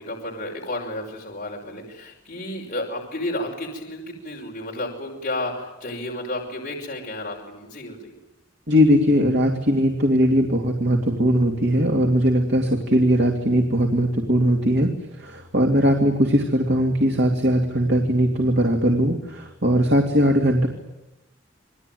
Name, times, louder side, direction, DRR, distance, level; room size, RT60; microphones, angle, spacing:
voice 1, 0.0-8.1, left 1 dB, 45° left, -1 dB, 5.7 m, -32 dB
voice 2, 8.7-20.7, equal, 60° right, 2 dB, 2.7 m, -20 dB
28.5 x 21.0 x 9.4 m, 1.0 s
head